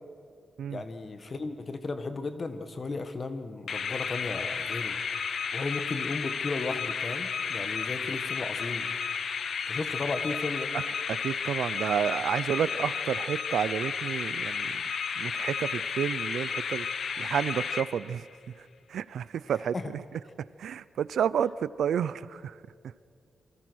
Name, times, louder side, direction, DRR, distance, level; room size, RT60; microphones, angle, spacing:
voice 1, 0.7-5.0 5.5-8.9 9.7-10.7 19.5-19.9, left 3 dB, 30° left, 9 dB, 1.6 m, -35 dB
sound 1, 3.7-18.3, left 6 dB, 55° left, 1.4 m, -32 dB
voice 2, 11.1-14.8 15.2-16.9 17.2-18.3 18.9-20.0 20.6-22.5, right 8 dB, 85° right, 18 dB, 0.6 m, -30 dB
27.5 x 25.0 x 6.4 m, 2.4 s
wide cardioid pair, 160°, 0 cm